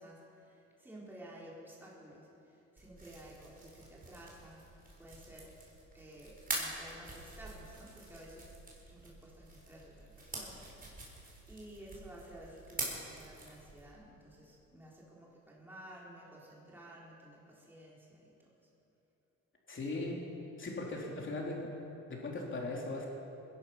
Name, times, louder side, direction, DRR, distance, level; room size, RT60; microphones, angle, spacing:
voice 1, 0.0-4.7 5.0-5.5 5.9-8.5 8.9-18.5, right 1 dB, 5° right, -5 dB, 3.8 m, -53 dB
sound 1, 2.8-13.9, right 2 dB, 30° right, 4.6 m, -45 dB
voice 2, 19.7-20.2 20.6-21.8 22.1-23.1, left 2 dB, 40° left, -1 dB, 3.6 m, -38 dB
20.5 x 11.0 x 5.8 m, 2.9 s
cardioid pair, 90°, 30 cm